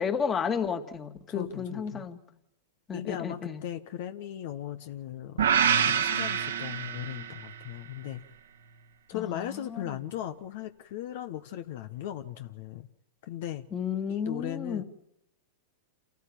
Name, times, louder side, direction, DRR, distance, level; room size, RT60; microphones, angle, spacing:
voice 1, 0.0-2.2 2.9-3.6 9.1-9.8 13.7-14.8, left 6 dB, 25° left, 8 dB, 2.2 m, -32 dB
voice 2, 1.3-2.1 2.9-8.2 9.1-12.9 13.2-13.7 14.1-14.8, left 11 dB, 65° left, 9 dB, 1.3 m, -38 dB
sound 1, 5.4-7.6, right 8 dB, 85° right, 1.6 m, -26 dB
28.0 x 14.0 x 9.0 m, 0.83 s
hypercardioid pair, 115°, 0 cm